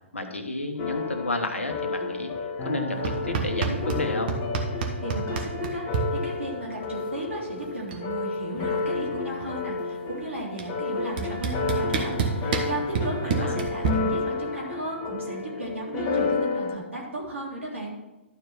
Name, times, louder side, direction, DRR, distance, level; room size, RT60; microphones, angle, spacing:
voice 1, 0.1-2.3 2.6-4.4 13.2-13.6, left 2 dB, 80° left, 6 dB, 1.3 m, -31 dB
sound 1, 0.8-16.8, left 4 dB, 35° left, 1.2 m, -31 dB
sound 2, 3.0-4.0 4.3-6.0 7.3-7.4 7.7-8.1 8.3-9.7 10.6-10.7 11.2-13.9, right 6 dB, 50° right, 1.4 m, -28 dB
voice 2, 4.8-17.9, right 2 dB, 80° right, -3 dB, 3.3 m, -35 dB
12.0 x 4.7 x 6.0 m, 1.0 s
figure-of-eight pair, 115°, 7 cm